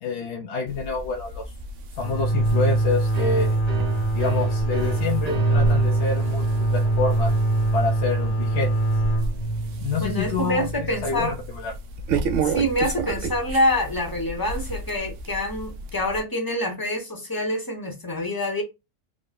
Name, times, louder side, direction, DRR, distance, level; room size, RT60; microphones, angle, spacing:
voice 1, 0.0-1.4 2.0-3.6 4.1-6.5 6.7-7.3 7.7-8.7 9.8-11.7, left 4 dB, 65° left, 0.8 m, -27 dB
sound 1, 0.7-16.2, right 3 dB, 75° right, 0.9 m, -33 dB
sound 2, 2.0-11.5, right 2 dB, 40° left, 1.1 m, -23 dB
sound 3, 3.1-10.6, right 6 dB, 45° right, 0.6 m, -36 dB
voice 2, 10.0-11.3 12.4-18.6, left 1 dB, 20° left, 0.8 m, -26 dB
3.7 x 2.1 x 3.6 m
omnidirectional pair, 1.4 m